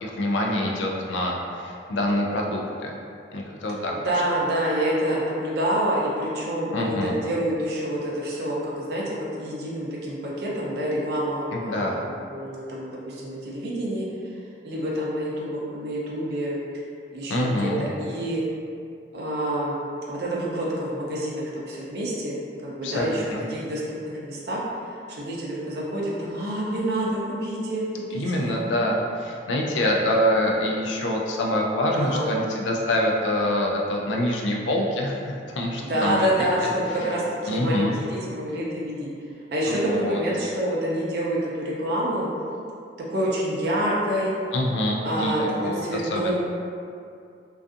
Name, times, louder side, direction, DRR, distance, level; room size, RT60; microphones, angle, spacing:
voice 1, 0.0-2.9 3.3-3.9 6.7-7.2 11.5-12.0 17.3-17.8 22.8-23.4 28.1-36.5 37.0-37.1 37.5-38.0 39.7-40.2 44.5-46.3, left 1 dB, 85° left, -1 dB, 0.4 m, -25 dB
voice 2, 4.0-14.0 14.6-16.6 17.1-18.4 19.1-19.8 20.1-22.3 22.6-23.8 24.2-24.6 25.1-28.6 31.9-32.3 35.8-39.1 39.5-41.5 41.8-42.3 43.1-44.3 45.0-46.3, right 1 dB, 60° right, -5 dB, 0.4 m, -27 dB
2.5 x 2.3 x 2.4 m, 2.4 s
head